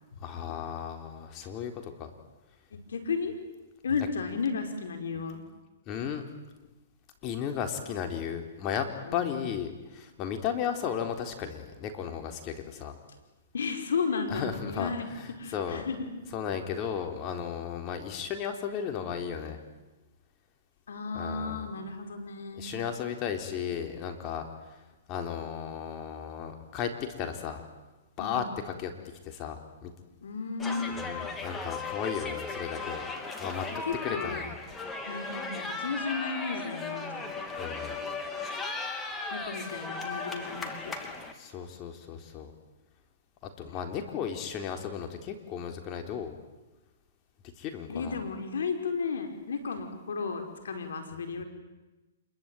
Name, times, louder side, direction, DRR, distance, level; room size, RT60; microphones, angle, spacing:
voice 1, 0.2-2.1 5.9-6.2 7.2-8.9 9.1-13.0 14.3-15.8 16.3-19.6 21.1-21.7 22.6-24.8 25.1-26.9 27.2-27.6 28.2-28.9 29.2-29.9 31.0-33.0 33.4-34.5 37.6-38.0 41.3-42.5 43.6-46.4 47.6-48.2, left 8 dB, 35° left, 5 dB, 4.0 m, -35 dB
voice 2, 2.7-3.3 3.8-5.4 9.0-9.4 13.5-15.1 15.4-16.1 20.9-22.7 28.2-28.5 30.2-31.0 33.7-34.5 35.0-37.3 39.3-41.1 43.6-44.2 47.9-51.4, left 5 dB, 80° left, 6 dB, 5.2 m, -34 dB
sound 1, 30.6-41.3, left 3 dB, 15° left, 3.0 m, -36 dB
27.0 x 22.5 x 9.3 m, 1.1 s
hypercardioid pair, 135°, 0 cm